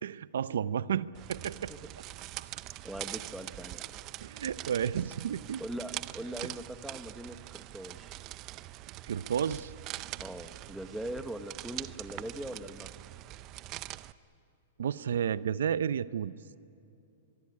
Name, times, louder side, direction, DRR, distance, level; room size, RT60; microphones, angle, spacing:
voice 1, 0.0-1.7 2.4-2.5 4.2-5.6 9.1-9.7 14.8-16.3, right 8 dB, 80° right, 17 dB, 0.6 m, -32 dB
sound 1, 1.1-14.1, right 16 dB, 30° right, 0.6 m, -43 dB
voice 2, 2.8-3.9 5.6-8.1 10.2-13.0, right 1 dB, ahead, 9 dB, 1.0 m, -41 dB
24.0 x 23.0 x 9.7 m, 2.6 s
hypercardioid pair, 155°, 0 cm